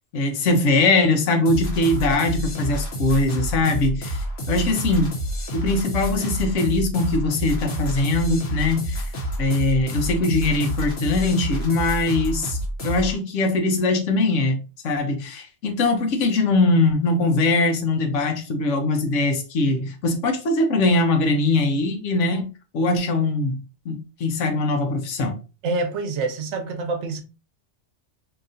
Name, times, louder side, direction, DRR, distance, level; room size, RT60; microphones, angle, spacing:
voice 1, 0.1-4.2 4.5-5.2 5.5-9.1 9.4-12.6 12.8-23.6 23.8-25.4, left 2 dB, 90° left, 1.1 m, -21 dB
sound 1, 1.5-13.2, right 1 dB, 60° left, 1.1 m, -28 dB
voice 2, 25.6-27.2, right 3 dB, 75° right, 1.0 m, -26 dB
3.9 x 2.9 x 2.5 m
omnidirectional pair, 1.2 m